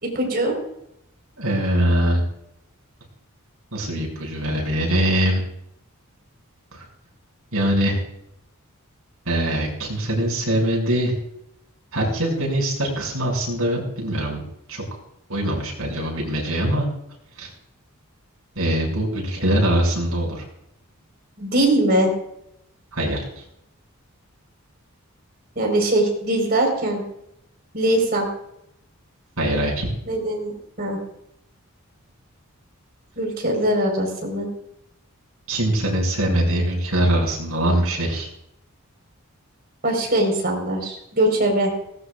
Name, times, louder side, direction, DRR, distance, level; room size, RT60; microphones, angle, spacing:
voice 1, 0.0-0.6 21.4-22.1 25.6-27.0 27.7-28.3 30.1-30.5 30.8-31.0 33.2-34.5 39.8-41.7, right 1 dB, 45° right, 1 dB, 4.3 m, -21 dB
voice 2, 1.4-2.2 3.7-5.4 6.7-6.8 7.5-8.0 9.3-11.1 11.9-14.4 14.7-14.8 15.3-16.8 17.4-17.5 18.6-20.4 22.9-23.4 29.4-29.9 35.5-38.3, right 1 dB, 70° right, -1 dB, 6.3 m, -22 dB
19.5 x 17.5 x 2.4 m, 0.78 s
head